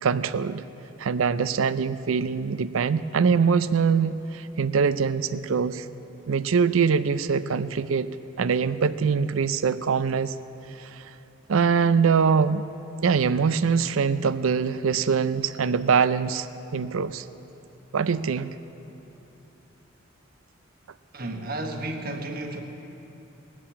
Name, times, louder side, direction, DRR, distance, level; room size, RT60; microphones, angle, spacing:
voice 1, 0.0-0.6 1.0-5.8 6.3-8.1 8.4-10.3 10.8-11.0 11.5-12.6 13.0-16.5 16.7-17.2 17.9-18.5, right 5 dB, 80° right, 14 dB, 0.5 m, -23 dB
voice 2, 21.1-22.6, right 2 dB, 45° right, 4 dB, 1.2 m, -32 dB
19.0 x 7.5 x 8.7 m, 3.0 s
head